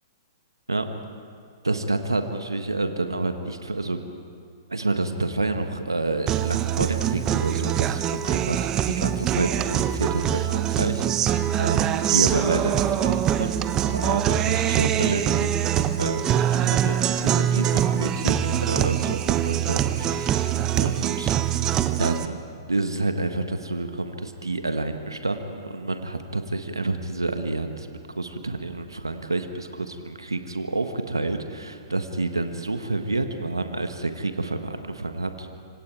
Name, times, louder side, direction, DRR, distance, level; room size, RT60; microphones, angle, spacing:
voice 1, 1.6-4.0 4.7-11.0 11.6-21.3 22.0-22.4 22.7-27.9 28.2-35.6, right 2 dB, 85° right, 7 dB, 1.4 m, -29 dB
Guitar, 6.3-22.2, right 10 dB, 25° right, 0.9 m, -24 dB
26.5 x 26.0 x 4.7 m, 2.2 s
figure-of-eight pair, 115°, 2 cm